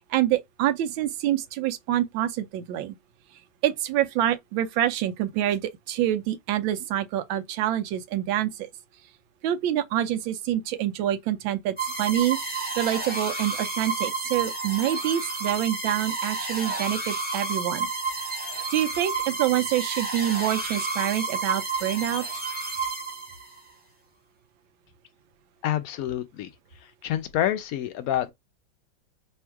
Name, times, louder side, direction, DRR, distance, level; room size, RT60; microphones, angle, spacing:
voice 1, 0.0-2.9 3.6-8.7 9.4-12.4 12.8-17.9 18.7-22.2, right 12 dB, 85° right, 1.4 m, -26 dB
sound 1, 11.8-23.6, right 4 dB, 10° right, 0.4 m, -30 dB
voice 2, 25.6-26.5 27.0-28.3, left 12 dB, 75° left, 0.8 m, -27 dB
3.5 x 2.4 x 4.4 m
omnidirectional pair, 2.1 m